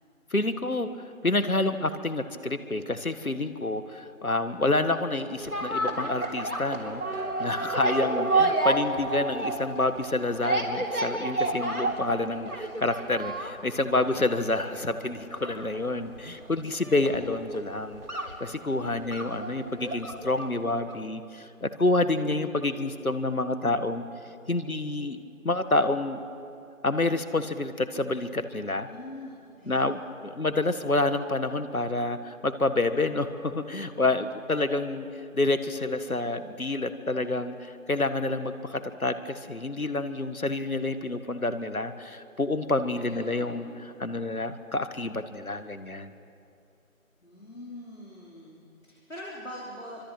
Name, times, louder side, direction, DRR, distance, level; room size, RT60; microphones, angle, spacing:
voice 1, 0.3-24.0 24.5-25.2 25.4-26.2 26.8-28.9 29.7-46.1, left 2 dB, 75° left, 10 dB, 1.9 m, -28 dB
sound 1, 5.4-20.6 20.9-21.0, right 2 dB, 85° right, 4.2 m, -30 dB
voice 2, 28.9-29.8 43.0-43.9 47.2-50.0, left 1 dB, 60° left, -5 dB, 5.0 m, -43 dB
26.0 x 25.0 x 6.1 m, 2.6 s
figure-of-eight pair, 180°, 42 cm